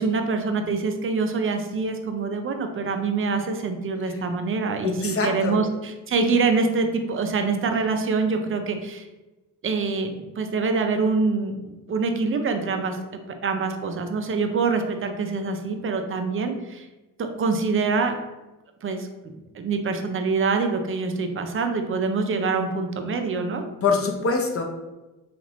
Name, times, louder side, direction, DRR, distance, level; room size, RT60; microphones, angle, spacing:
voice 1, 0.0-9.1 9.6-13.0 13.4-16.9 17.2-18.1 18.8-19.1 19.5-23.6, right 4 dB, 30° right, 6 dB, 0.5 m, -25 dB
voice 2, 4.8-5.6 23.8-24.6, left 4 dB, 30° left, 3 dB, 0.6 m, -24 dB
2.9 x 2.5 x 3.0 m, 1.1 s
hypercardioid pair, 45°, 43 cm